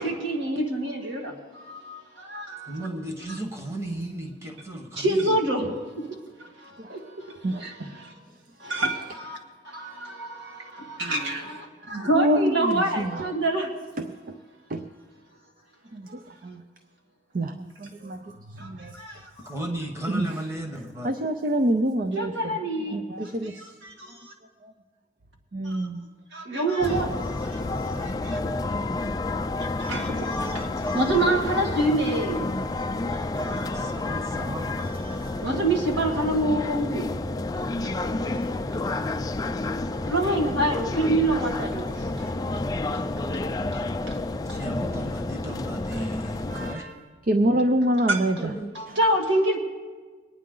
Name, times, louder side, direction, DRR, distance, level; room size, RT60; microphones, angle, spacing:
voice 1, 0.0-2.8 3.3-3.4 5.0-6.1 6.4-8.1 8.6-9.4 9.6-13.7 18.6-19.5 22.1-23.0 23.4-24.3 25.6-25.9 26.3-28.4 29.6-32.8 33.1-33.9 35.4-37.1 37.5-37.9 38.3-38.4 40.1-42.3 42.9-43.1 43.7-44.2 44.5-44.6 48.1-48.2 48.7-49.6, right 1 dB, 90° right, 1 dB, 2.0 m, -27 dB
voice 2, 2.7-5.4 19.4-21.1 33.5-34.7 41.1-41.7 44.5-46.8 48.4-48.7, right 1 dB, 15° right, 2 dB, 1.3 m, -35 dB
voice 3, 12.1-13.3 14.0-14.4 14.7-14.9 15.9-16.6 17.3-19.0 20.1-20.4 21.0-22.6 22.9-23.6 24.1-24.2 24.6-24.7 25.5-26.0 46.5-47.0 47.3-48.5, right 1 dB, 50° right, 8 dB, 0.5 m, -27 dB
sound 1, 26.8-46.7, left 2 dB, 20° left, 0.3 m, -30 dB
22.5 x 9.5 x 3.8 m, 1.5 s
head